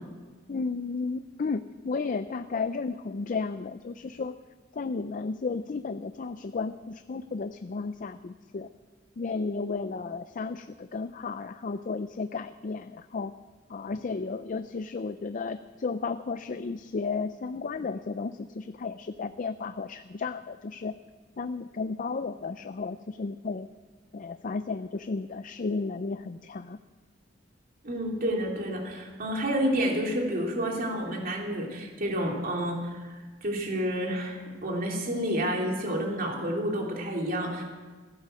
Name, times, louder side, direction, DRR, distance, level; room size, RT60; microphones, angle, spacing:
voice 1, 0.5-4.3 4.7-8.7 9.2-13.3 13.7-20.9 21.4-23.7 24.1-26.8, left 4 dB, 45° left, 11 dB, 0.4 m, -33 dB
voice 2, 27.8-33.1 33.4-37.6, equal, 50° right, 0 dB, 3.0 m, -29 dB
15.5 x 11.5 x 7.6 m, 1.4 s
head